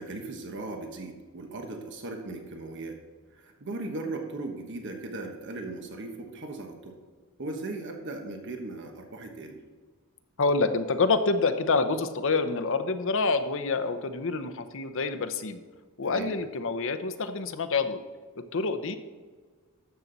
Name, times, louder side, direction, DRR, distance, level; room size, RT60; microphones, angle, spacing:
voice 1, 0.0-3.0 3.3-7.0 7.4-9.6 16.1-16.3, right 2 dB, 55° right, 4 dB, 1.3 m, -38 dB
voice 2, 10.4-15.6 16.0-18.0 18.5-19.0, left 3 dB, 65° left, 9 dB, 0.8 m, -27 dB
12.5 x 7.4 x 4.0 m, 1.5 s
head